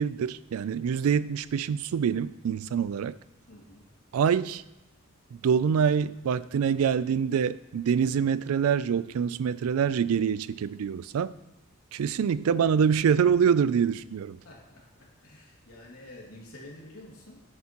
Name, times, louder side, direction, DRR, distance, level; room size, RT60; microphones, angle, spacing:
voice 1, 0.0-3.1 4.1-4.6 5.4-11.3 11.9-14.4, right 7 dB, 90° right, 0.3 m, -25 dB
voice 2, 3.5-3.8 14.4-17.4, left 1 dB, 85° left, 2.4 m, -49 dB
9.6 x 9.5 x 3.0 m
head